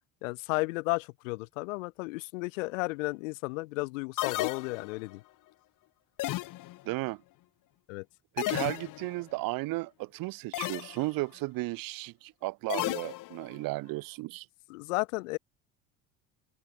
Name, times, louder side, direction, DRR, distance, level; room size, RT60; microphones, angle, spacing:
voice 1, 0.2-5.2 7.9-8.0 14.7-15.4, left 24 dB, 80° left, 1.4 m, -33 dB
sound 1, 4.2-5.1 6.2-6.9 8.4-9.2 10.5-11.1 12.7-13.6, left 18 dB, 55° left, 1.0 m, -34 dB
voice 2, 6.8-7.2 8.4-14.5, right 21 dB, 60° right, 1.2 m, -34 dB
open air
hypercardioid pair, 75°, 38 cm